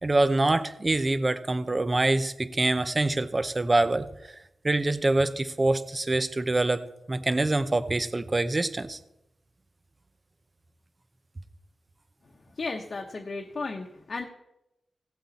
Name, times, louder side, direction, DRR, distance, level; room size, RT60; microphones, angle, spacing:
voice 1, 0.0-4.4 4.6-6.8 7.1-9.0, right 2 dB, 30° right, 13 dB, 0.7 m, -25 dB
voice 2, 12.5-14.2, left 3 dB, 50° left, 2 dB, 1.0 m, -34 dB
17.0 x 8.0 x 4.2 m, 0.89 s
wide cardioid pair, 90°, 0 cm